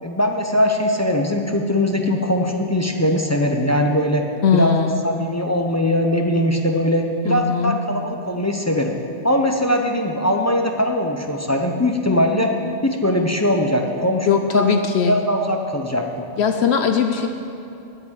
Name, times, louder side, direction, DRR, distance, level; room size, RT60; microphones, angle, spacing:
voice 1, 0.0-4.2 4.5-4.7 5.0-8.9 9.2-12.5 12.8-14.7 15.0-16.1, left 1 dB, 20° left, 3 dB, 0.5 m, -20 dB
voice 2, 4.4-5.1 7.2-7.8 14.2-15.2 16.4-17.3, left 6 dB, 65° left, 6 dB, 0.8 m, -19 dB
8.5 x 8.4 x 8.4 m, 2.9 s
omnidirectional pair, 1.3 m